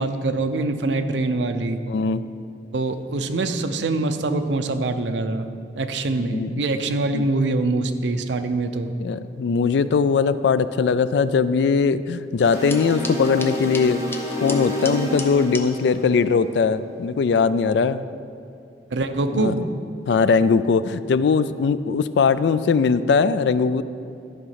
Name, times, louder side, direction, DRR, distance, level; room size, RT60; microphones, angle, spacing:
voice 1, 0.0-1.8 2.7-5.5 5.7-8.9 18.9-19.6, right 2 dB, 85° right, 8 dB, 0.6 m, -24 dB
voice 2, 1.9-2.2 6.2-6.6 7.1-7.3 9.0-14.0 14.4-18.1 19.3-19.6 20.1-23.8, left 5 dB, 75° left, 14 dB, 0.3 m, -20 dB
sound 1, 12.4-15.7, left 2 dB, 15° left, 0.6 m, -36 dB
sound 2, 12.4-16.8, equal, 15° right, 1.4 m, -29 dB
12.5 x 5.3 x 5.7 m, 2.5 s
head